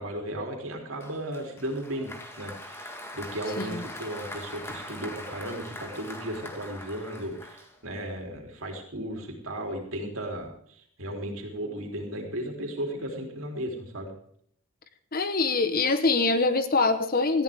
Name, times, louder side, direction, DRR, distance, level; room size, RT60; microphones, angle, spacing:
voice 1, 0.0-2.1 2.4-14.1, right 1 dB, 70° right, 2 dB, 3.5 m, -35 dB
Applause, 1.0-8.1, left 1 dB, 10° left, 1.8 m, -42 dB
voice 2, 15.1-17.4, left 3 dB, 40° left, 10 dB, 1.1 m, -24 dB
19.0 x 14.5 x 3.6 m, 0.64 s
head